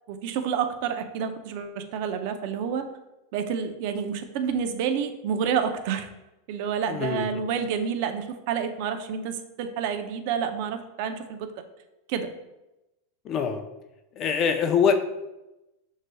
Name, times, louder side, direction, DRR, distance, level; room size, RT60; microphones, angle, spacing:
voice 1, 0.1-2.9 3.3-6.1 6.5-11.5 12.1-12.3, right 7 dB, 55° right, 8 dB, 0.5 m, -29 dB
voice 2, 6.9-7.4 13.3-13.6 14.2-14.9, left 7 dB, 35° left, 6 dB, 0.5 m, -24 dB
6.3 x 3.1 x 2.2 m, 0.97 s
supercardioid pair, 140°, 0 cm